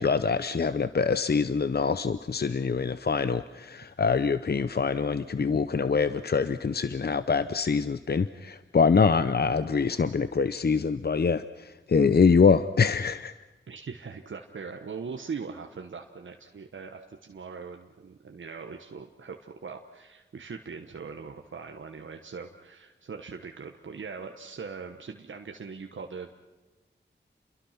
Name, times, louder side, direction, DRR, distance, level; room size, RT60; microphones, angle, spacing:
voice 1, 0.0-13.3, left 5 dB, 55° left, 13 dB, 0.7 m, -24 dB
voice 2, 13.7-26.3, right 5 dB, 90° right, 4 dB, 1.2 m, -41 dB
28.5 x 22.5 x 5.9 m, 1.2 s
cardioid pair, 50°, 19 cm